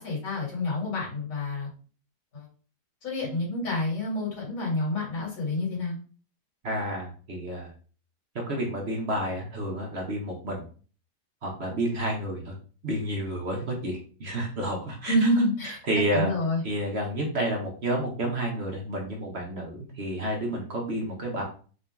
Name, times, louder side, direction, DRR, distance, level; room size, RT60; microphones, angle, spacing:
voice 1, 0.0-1.7 2.3-2.5 3.0-5.9 15.1-16.6, left 1 dB, 50° left, -3 dB, 2.2 m, -28 dB
voice 2, 6.6-7.7 8.3-10.6 11.4-12.5 12.8-15.1 15.9-16.3 16.6-21.4, right 1 dB, 45° right, -1 dB, 0.9 m, -30 dB
3.9 x 2.7 x 3.4 m, 0.39 s
omnidirectional pair, 1.9 m